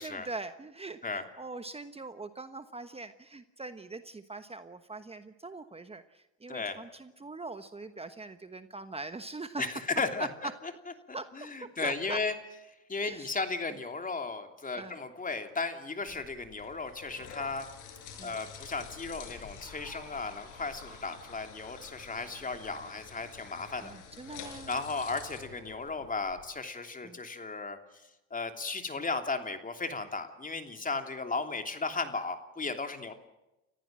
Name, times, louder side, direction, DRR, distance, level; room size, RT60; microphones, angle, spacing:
voice 1, 0.0-9.6 11.1-11.5 11.8-12.2 13.0-13.3 14.8-15.0 18.2-18.3 23.8-24.7 27.0-27.2, right 3 dB, 20° right, 10 dB, 1.2 m, -42 dB
voice 2, 6.5-6.8 9.6-10.5 11.1-12.3 12.9-17.7 18.2-23.9 24.7-33.1, left 4 dB, 25° left, 6 dB, 3.1 m, -35 dB
sound 1, 16.1-26.4, left 6 dB, 75° left, 6.0 m, -48 dB
30.0 x 15.0 x 7.6 m, 0.97 s
supercardioid pair, 80°, 32 cm